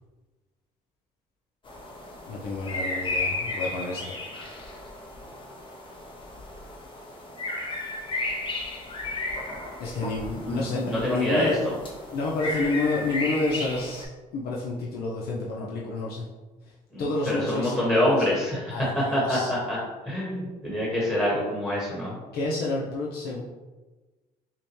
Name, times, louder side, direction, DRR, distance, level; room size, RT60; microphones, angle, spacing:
sound 1, 1.7-14.1, left 2 dB, 30° left, 0.8 m, -34 dB
voice 1, 2.3-4.1 9.8-11.6 12.1-16.2 17.0-18.1 18.7-19.5 22.3-23.4, left 2 dB, 70° left, -4 dB, 0.7 m, -29 dB
voice 2, 10.4-11.7 16.9-19.8 20.0-22.2, equal, 10° left, -6 dB, 1.3 m, -26 dB
5.7 x 2.2 x 3.1 m, 1.2 s
cardioid pair, 110°, 17 cm